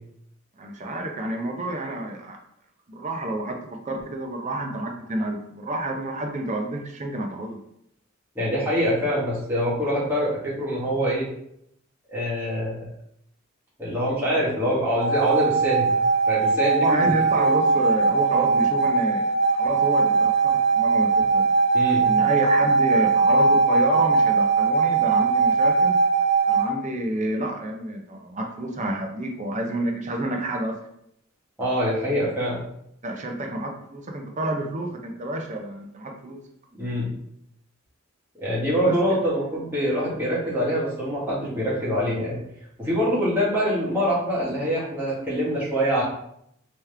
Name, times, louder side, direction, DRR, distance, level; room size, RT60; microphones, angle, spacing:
voice 1, 0.6-2.4 2.9-7.6 16.8-21.4 22.0-26.0 26.5-30.8 33.0-36.4 38.8-39.2, right 1 dB, 35° right, 2 dB, 0.6 m, -29 dB
voice 2, 8.3-11.3 12.1-12.8 13.8-15.9 16.3-17.5 21.7-22.0 31.6-32.6 36.8-37.1 38.4-42.4 42.8-46.0, equal, 10° right, -8 dB, 1.3 m, -24 dB
sound 1, 15.0-26.7, right 4 dB, 50° right, 1.2 m, -20 dB
3.5 x 3.0 x 3.3 m, 0.74 s
head